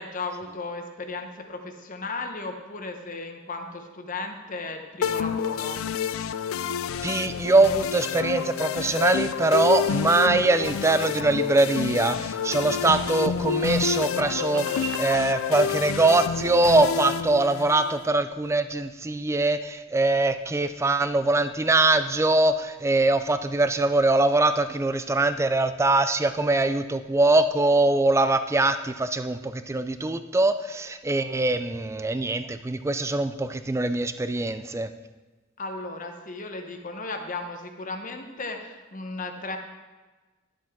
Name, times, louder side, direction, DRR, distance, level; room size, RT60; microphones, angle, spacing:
voice 1, 0.0-5.8 35.6-39.6, left 3 dB, 40° left, 5 dB, 0.9 m, -35 dB
sound 1, 5.0-18.1, left 8 dB, 80° left, 0.3 m, -29 dB
voice 2, 7.0-34.9, right 2 dB, 15° right, 11 dB, 0.3 m, -23 dB
sound 2, 12.4-15.1, right 5 dB, 50° right, 0.7 m, -40 dB
11.5 x 7.6 x 3.6 m, 1.2 s
head